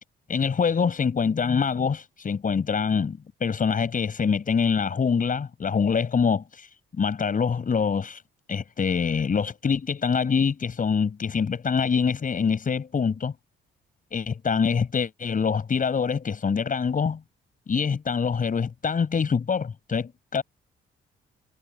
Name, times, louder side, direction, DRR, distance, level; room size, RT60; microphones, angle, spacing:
voice 1, 0.3-6.4 7.0-8.2 8.5-13.3 14.1-17.2 17.7-20.4, left 6 dB, 40° left, 7.6 m, -25 dB
cardioid pair, 90°, 20 cm